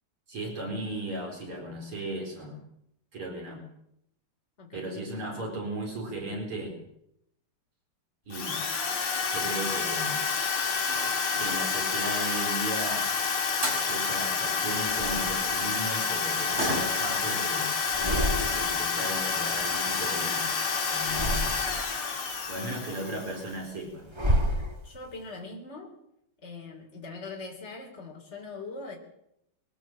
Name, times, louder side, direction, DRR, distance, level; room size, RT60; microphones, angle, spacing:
voice 1, 0.3-2.6 3.1-3.6 4.7-6.8 8.3-8.6 9.2-10.2 11.4-13.1 13.8-17.7 18.5-20.5 20.9-21.5 22.5-24.1, right 1 dB, 80° right, 1 dB, 5.3 m, -36 dB
voice 2, 4.6-4.9 22.6-22.7 24.8-25.9 26.4-29.0, left 3 dB, 30° left, 0 dB, 3.7 m, -41 dB
Drill, 8.3-23.5, left 5 dB, 75° left, 3.2 m, -29 dB
sound 1, 10.2-10.3 10.8-11.7 13.2-13.3 13.6-13.9 16.6-17.2 17.6-17.7 18.1-18.2 19.0-19.1 19.4-19.5 20.0-20.3 20.6-20.7 21.0-21.1, right 1 dB, 30° right, 5.7 m, -35 dB
sound 2, 12.9-14.1 14.8-15.8 16.2-17.5 17.8-18.9 19.2-20.6 21.0-22.0 22.5-25.2, equal, 15° right, 1.2 m, -33 dB
22.5 x 15.5 x 7.5 m, 0.79 s
omnidirectional pair, 2.4 m